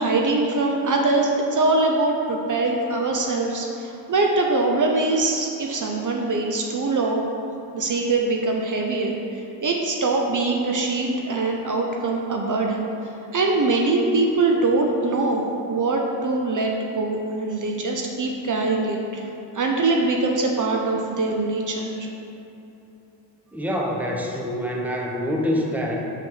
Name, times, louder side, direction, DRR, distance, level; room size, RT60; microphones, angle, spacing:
voice 1, 0.0-7.3 7.7-12.9 13.3-15.4 15.7-19.2 19.5-22.1, right 3 dB, 45° right, 1 dB, 0.8 m, -23 dB
voice 2, 23.5-26.0, equal, 5° right, -1 dB, 0.9 m, -26 dB
6.4 x 4.0 x 5.6 m, 2.9 s
cardioid pair, 70°, 43 cm